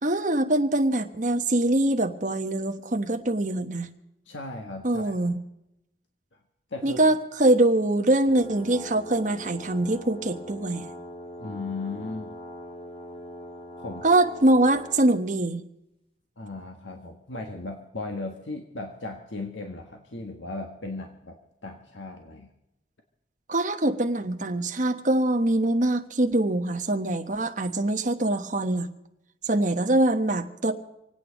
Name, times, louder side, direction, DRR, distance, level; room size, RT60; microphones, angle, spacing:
voice 1, 0.0-3.9 4.8-5.3 6.8-10.9 14.0-15.6 23.5-28.9 29.4-30.7, right 1 dB, 40° right, 6 dB, 1.2 m, -23 dB
voice 2, 4.2-5.1 6.7-7.0 11.4-12.4 13.8-14.0 16.4-22.5, left 3 dB, 85° left, 3 dB, 1.6 m, -36 dB
sound 1, 8.3-15.0, equal, 30° left, 2.3 m, -41 dB
26.5 x 9.1 x 5.2 m, 0.86 s
head